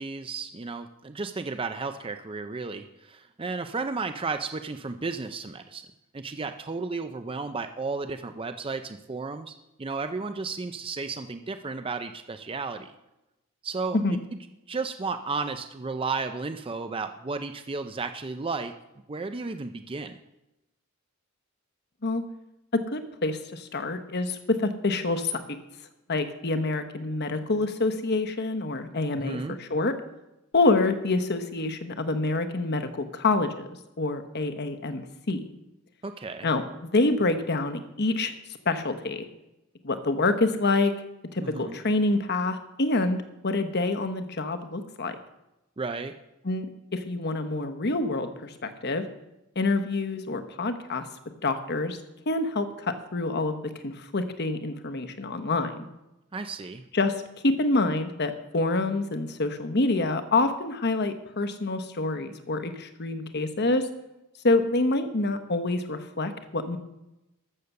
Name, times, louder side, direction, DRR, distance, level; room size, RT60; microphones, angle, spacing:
voice 1, 0.0-5.9 6.1-12.9 13.6-14.0 14.7-18.7 19.1-20.2 29.2-29.6 36.0-36.5 41.4-41.8 45.8-46.2 56.3-56.8, right 4 dB, 25° right, 8 dB, 0.5 m, -33 dB
voice 2, 22.7-25.4 26.1-29.9 30.5-33.7 34.0-35.5 36.4-38.3 38.6-39.3 39.8-40.9 41.3-45.2 46.4-46.7 46.9-49.0 49.5-51.1 51.4-52.0 52.3-55.8 56.9-57.1 57.4-63.9 64.4-66.8, left 2 dB, 55° left, 9 dB, 1.1 m, -27 dB
13.0 x 6.8 x 6.9 m, 0.93 s
head